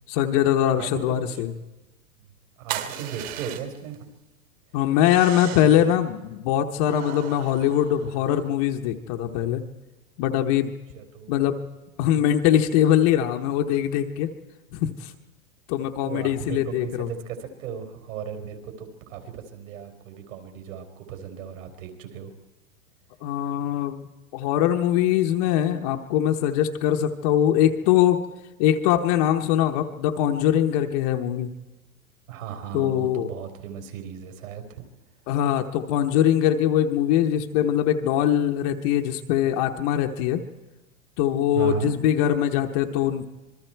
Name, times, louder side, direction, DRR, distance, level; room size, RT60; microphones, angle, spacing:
voice 1, 0.1-1.5 4.7-9.6 10.2-10.7 11.3-11.6 12.0-14.3 14.7-15.1 15.7-17.1 23.2-28.2 28.6-31.5 32.7-33.3 35.3-40.4 41.2-43.3, left 11 dB, 25° left, 5 dB, 0.9 m, -22 dB
voice 2, 2.6-4.1 5.5-5.9 10.9-11.4 16.0-22.3 32.3-34.8 41.5-42.0, right 8 dB, 60° right, 6 dB, 4.6 m, -36 dB
sound 1, 2.7-4.0 5.0-5.9 6.8-8.5, right 12 dB, 40° right, 2.1 m, -37 dB
26.5 x 21.5 x 4.5 m, 1.1 s
supercardioid pair, 165°, 45 cm